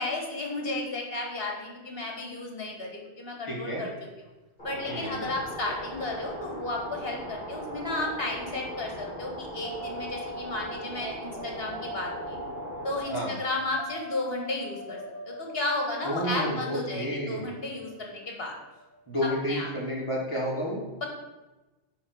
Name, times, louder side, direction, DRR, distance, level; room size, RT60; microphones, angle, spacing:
voice 1, 0.0-3.9 4.6-12.4 12.8-15.0 15.2-18.5 19.2-19.7, left 2 dB, 65° left, 0 dB, 1.8 m, -33 dB
voice 2, 3.5-3.8 4.9-5.3 13.1-13.3 16.0-17.4 19.1-20.8, equal, 30° left, -5 dB, 2.7 m, -31 dB
sound 1, 4.6-13.0, right 1 dB, 45° left, 3.0 m, -39 dB
sound 2, 9.6-19.8, right 1 dB, 65° right, 1.1 m, -43 dB
9.8 x 3.5 x 6.2 m, 1.1 s
omnidirectional pair, 1.1 m